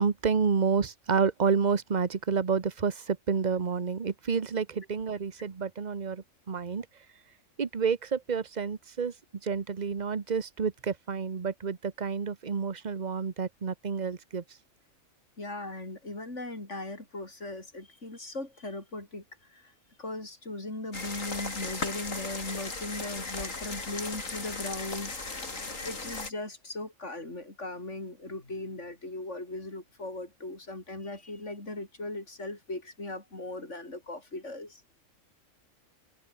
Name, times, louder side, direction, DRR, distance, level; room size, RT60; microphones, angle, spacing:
voice 1, 0.0-6.9 7.6-9.1 9.4-14.4 25.6-25.8, right 6 dB, 35° right, 1.2 m, -29 dB
voice 2, 15.4-19.7 20.0-25.2 25.8-34.8, left 2 dB, 65° left, 6.3 m, -38 dB
sound 1, 20.9-26.3, left 3 dB, 80° left, 3.9 m, -37 dB
open air
omnidirectional pair, 1.3 m